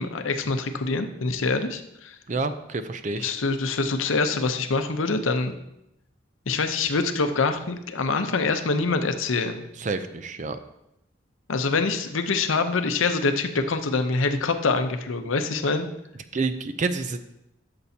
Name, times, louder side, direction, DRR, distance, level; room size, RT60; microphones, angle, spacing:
voice 1, 0.0-2.2 3.2-5.5 6.5-9.6 11.5-15.9, left 3 dB, 80° left, 7 dB, 0.7 m, -25 dB
voice 2, 2.3-3.3 9.8-10.6 16.3-17.2, right 3 dB, 40° right, 10 dB, 0.5 m, -28 dB
12.5 x 6.9 x 2.8 m, 0.84 s
head